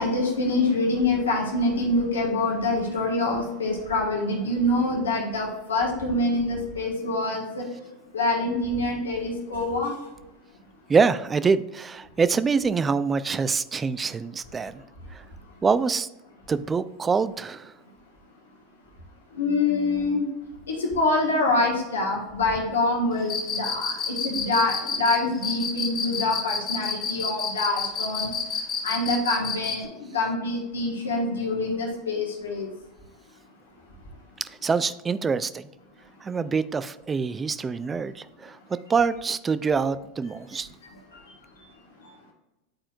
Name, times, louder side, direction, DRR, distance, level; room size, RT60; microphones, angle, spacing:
voice 1, 0.0-7.6 8.1-9.9 19.4-20.2 20.7-28.3 28.8-29.9 30.1-32.7, left 2 dB, 80° left, -1 dB, 1.3 m, -25 dB
voice 2, 10.9-14.8 15.1-15.2 15.6-16.1 16.5-17.7 34.6-35.6 36.2-38.6 38.9-40.7, right 5 dB, 20° right, 14 dB, 0.4 m, -25 dB
Cricket, 23.2-29.8, left 5 dB, 35° left, 1.8 m, -29 dB
10.0 x 4.3 x 2.4 m, 1.0 s
hypercardioid pair, 85°, 0 cm